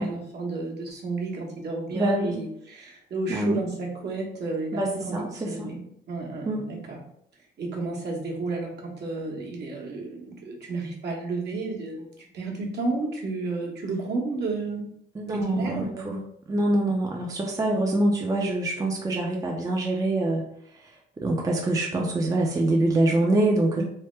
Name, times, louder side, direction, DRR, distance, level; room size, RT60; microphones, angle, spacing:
voice 1, 0.0-7.0 7.6-12.1 12.3-14.9 15.3-16.3 23.8-23.9, right 3 dB, 55° right, -2 dB, 1.0 m, -32 dB
voice 2, 1.9-2.4 3.3-3.6 4.7-5.7 6.5-6.6 15.2-16.2 16.5-20.4 21.2-23.8, right 1 dB, 15° right, -1 dB, 0.5 m, -25 dB
3.3 x 2.1 x 3.1 m, 0.72 s
cardioid pair, 90°, 20 cm